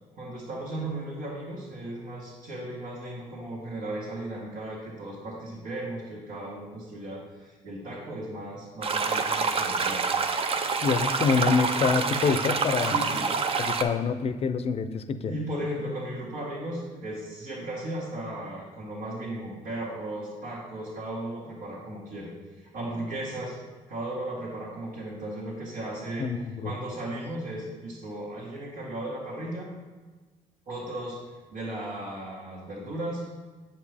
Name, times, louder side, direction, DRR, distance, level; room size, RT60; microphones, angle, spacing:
voice 1, 0.1-10.1 12.8-13.3 15.2-23.6 23.9-26.3 26.6-29.7 30.7-31.2 31.5-33.3, right 1 dB, 80° right, -8 dB, 1.8 m, -36 dB
sound 1, 8.8-13.8, right 5 dB, 40° right, 0.5 m, -27 dB
voice 2, 10.8-12.9 13.5-15.3 26.2-26.7, left 5 dB, 45° left, 10 dB, 0.5 m, -26 dB
7.6 x 5.2 x 3.4 m, 1.3 s
cardioid pair, 80°, 14 cm